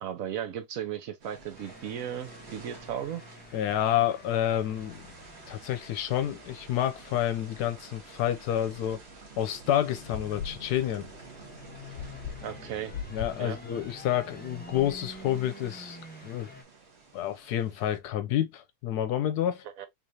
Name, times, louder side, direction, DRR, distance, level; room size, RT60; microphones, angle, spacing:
voice 1, 0.0-3.2 12.4-12.9 13.4-13.6 19.8-19.9, right 9 dB, 60° right, 1.1 m, -35 dB
sound 1, 1.2-18.0, right 3 dB, 45° right, 1.4 m, -51 dB
sound 2, 1.6-16.6, equal, 10° left, 0.6 m, -50 dB
voice 2, 3.5-5.0 5.5-9.0 9.4-11.1 13.1-16.5 17.1-19.6, left 11 dB, 80° left, 1.1 m, -29 dB
sound 3, 9.8-15.2, left 7 dB, 60° left, 0.9 m, -43 dB
3.8 x 3.2 x 2.7 m
omnidirectional pair, 1.7 m